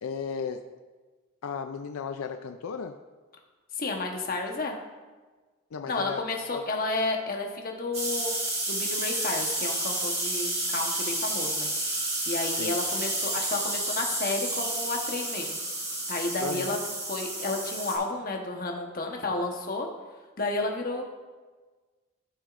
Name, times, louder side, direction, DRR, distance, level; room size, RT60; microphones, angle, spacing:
voice 1, 0.0-0.6 1.4-3.0 5.7-6.2 6.5-6.6 12.6-12.8 16.4-16.8, left 6 dB, 85° left, 7 dB, 0.4 m, -34 dB
voice 2, 3.8-4.8 5.9-11.7 12.3-15.6 16.1-16.8 17.1-19.9 20.4-21.0, left 2 dB, 45° left, 1 dB, 1.0 m, -31 dB
sound 1, 7.9-18.0, right 2 dB, 30° right, 1.7 m, -30 dB
13.5 x 6.2 x 2.5 m, 1.3 s
head